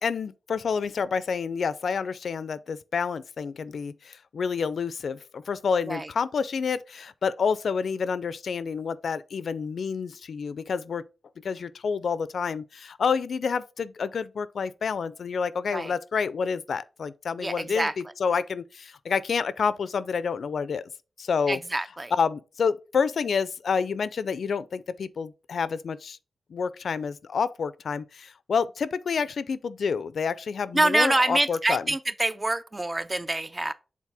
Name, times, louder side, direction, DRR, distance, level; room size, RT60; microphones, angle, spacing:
voice 1, 0.0-11.0 11.4-20.9 21.2-21.6 22.1-26.2 26.5-31.9, left 6 dB, 70° left, 0.4 m, -28 dB
voice 2, 17.4-17.9 21.5-22.1 30.7-33.7, right 2 dB, 20° right, 0.4 m, -26 dB
7.4 x 4.0 x 3.4 m
wide cardioid pair, 180°, 0 cm